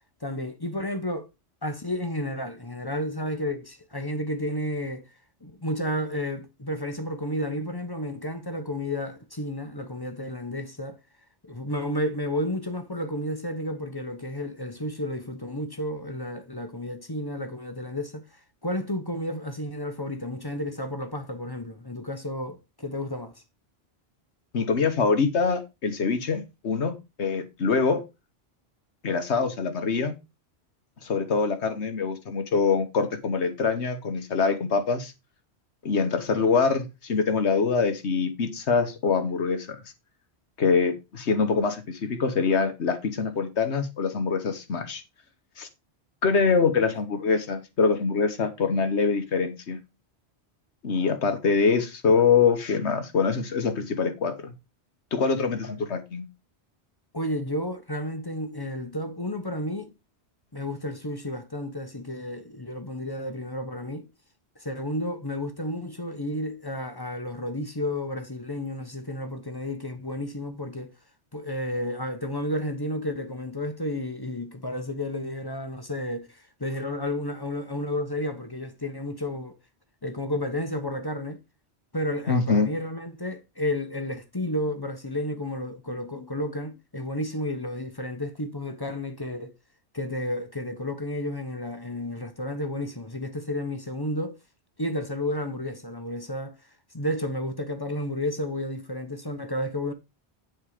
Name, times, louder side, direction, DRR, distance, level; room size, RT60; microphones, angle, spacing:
voice 1, 0.2-1.3 1.6-5.1 5.4-11.0 11.4-23.4 46.8-46.9 55.6-55.8 57.1-59.9 60.5-64.1 64.6-70.9 71.3-79.6 80.0-81.4 81.9-89.5 89.9-94.4 94.8-96.6 96.9-99.9, left 1 dB, 20° left, 1.0 m, -32 dB
voice 2, 24.5-28.0 29.0-30.1 31.0-35.1 35.8-39.8 40.6-45.0 45.6-45.7 46.2-49.8 50.8-54.5 55.1-56.3 82.3-82.7, left 5 dB, 90° left, 1.5 m, -24 dB
9.4 x 4.5 x 5.0 m
omnidirectional pair, 1.1 m